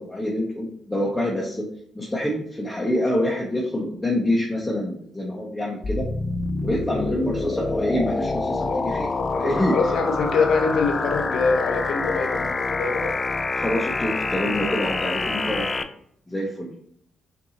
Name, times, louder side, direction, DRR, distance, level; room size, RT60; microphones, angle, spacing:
voice 1, 0.0-1.7 1.9-6.1 6.6-9.1 9.4-9.7 13.5-15.7 16.3-16.7, left 1 dB, 10° left, -2 dB, 0.8 m, -26 dB
sound 1, 5.8-15.8, left 3 dB, 35° left, 0.4 m, -26 dB
voice 2, 8.7-13.1, left 4 dB, 70° left, 4 dB, 0.8 m, -25 dB
5.4 x 2.7 x 2.7 m, 0.68 s
cardioid pair, 90°, 0 cm